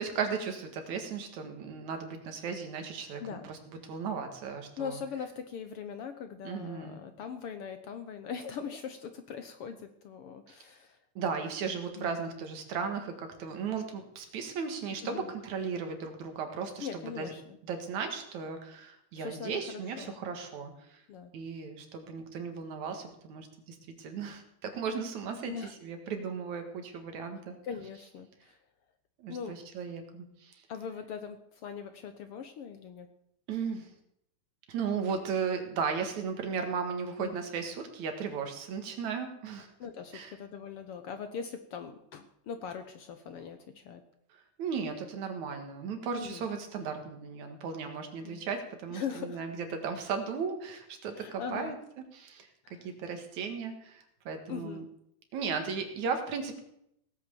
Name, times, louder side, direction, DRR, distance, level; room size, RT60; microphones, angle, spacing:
voice 1, 0.0-5.0 6.4-7.0 10.5-10.6 11.2-17.3 17.6-21.0 21.3-25.5 25.8-27.5 29.2-30.6 33.5-33.9 34.7-39.7 40.1-40.3 44.6-51.8 52.1-52.5 52.8-54.8 55.3-56.6, right 5 dB, 75° right, 6 dB, 3.1 m, -36 dB
voice 2, 4.8-11.0 12.0-12.2 15.0-15.3 16.8-17.6 19.2-20.2 21.1-21.3 25.5-25.7 27.6-28.6 29.3-29.6 30.7-33.1 37.2-37.4 39.8-44.0 45.5-45.6 46.2-46.5 48.2-48.4 48.9-49.4 51.1-51.8 52.6-52.9 54.5-54.9, left 7 dB, 65° left, 8 dB, 1.5 m, -41 dB
17.5 x 8.5 x 6.9 m, 0.75 s
omnidirectional pair, 3.3 m